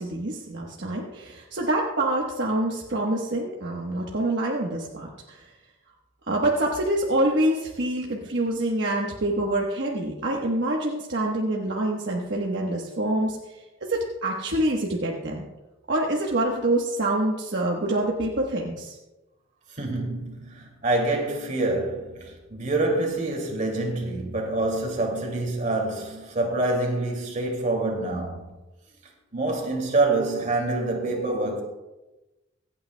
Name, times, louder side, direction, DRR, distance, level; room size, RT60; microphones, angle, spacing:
voice 1, 0.0-5.5 6.3-15.5 15.9-19.0, right 1 dB, 60° right, 1.2 m, -26 dB
voice 2, 19.7-28.5 29.3-31.6, right 2 dB, 40° right, 2.4 m, -26 dB
25.0 x 8.8 x 2.2 m
head